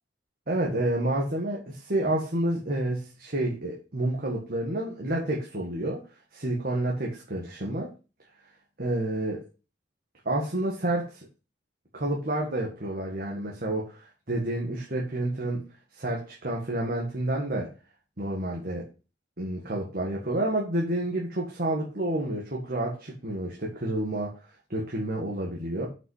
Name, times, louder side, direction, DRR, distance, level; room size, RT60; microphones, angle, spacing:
voice 1, 0.5-6.0 6.3-7.9 8.8-9.4 10.3-11.3 11.9-15.7 15.9-17.7 18.2-18.9 19.4-24.3 24.7-25.9, right 1 dB, 50° right, -2 dB, 1.9 m, -29 dB
7.4 x 5.7 x 5.5 m, 0.33 s
head